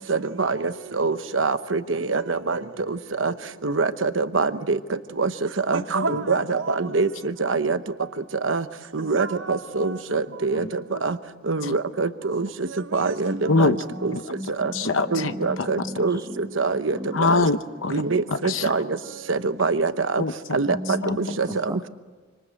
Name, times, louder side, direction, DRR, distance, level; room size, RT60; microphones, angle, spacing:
voice 1, 0.1-0.6 1.0-2.6 3.2-3.3 3.6-4.8 5.2-5.3 5.7-7.1 7.4-7.8 8.4-8.6 8.9-10.6 11.0-11.2 11.5-12.5 12.9-13.7 14.0-14.1 14.6-14.7 15.1-16.2 16.6-17.4 17.9-18.8 19.3-20.2 20.5-20.7 21.4-21.5, right 4 dB, 75° right, 1.0 m, -24 dB
voice 2, 10.5-11.0 11.6-11.7 13.5-13.9 14.1-14.2 14.7-16.0 17.1-18.0 18.3-18.7 20.2-21.2 21.5-21.6, left 3 dB, 85° left, 0.9 m, -25 dB
voice 3, 13.2-14.8 15.2-17.2 20.7-21.9, equal, 20° right, 0.9 m, -36 dB
26.0 x 26.0 x 7.8 m
head